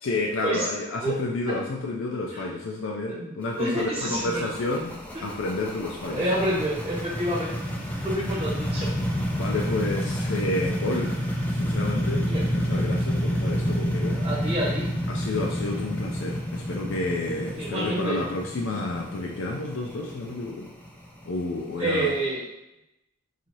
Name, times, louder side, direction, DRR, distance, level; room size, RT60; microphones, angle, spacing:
voice 1, 0.0-6.3 9.3-11.1 11.5-12.2 12.5-14.2 15.1-20.7 21.3-22.1, left 2 dB, 70° left, -1 dB, 0.4 m, -30 dB
voice 2, 3.1-4.5 6.1-7.7 8.0-9.0 12.2-12.4 14.1-14.8 17.6-18.2 21.8-22.4, right 1 dB, 30° right, -7 dB, 1.1 m, -28 dB
sound 1, 3.4-22.2, equal, 5° left, 0.3 m, -29 dB
3.9 x 2.7 x 3.1 m, 0.89 s
head